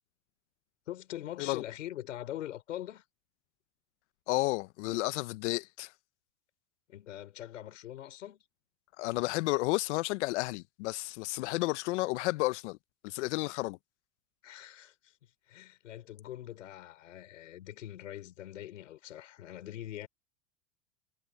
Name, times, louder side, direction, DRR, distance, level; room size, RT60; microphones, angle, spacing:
voice 1, 0.9-3.0 6.9-8.4 14.4-15.1 15.5-20.1, left 12 dB, 85° left, 4.9 m, -43 dB
voice 2, 4.3-5.9 9.0-12.8 13.0-13.8, left 21 dB, 65° left, 0.8 m, -32 dB
hypercardioid pair, 110°, 37 cm